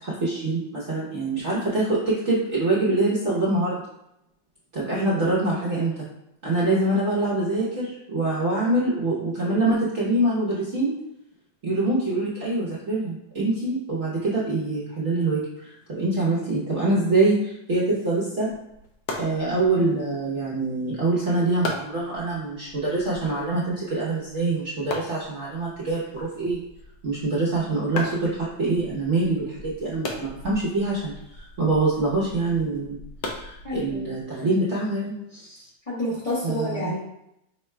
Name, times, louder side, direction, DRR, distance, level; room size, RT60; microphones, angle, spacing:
voice 1, 0.0-3.8 4.7-6.1 6.4-10.9 11.6-18.6 19.2-26.6 27.0-33.0 33.3-35.7 36.4-36.9, right 2 dB, 50° right, -7 dB, 0.9 m, -25 dB
voice 2, 4.9-5.2 33.6-34.1 35.9-37.0, left 1 dB, 25° left, -7 dB, 0.9 m, -29 dB
sound 1, 18.4-34.2, left 2 dB, 65° left, 1.1 m, -39 dB
5.4 x 2.2 x 3.2 m, 0.80 s
omnidirectional pair, 2.1 m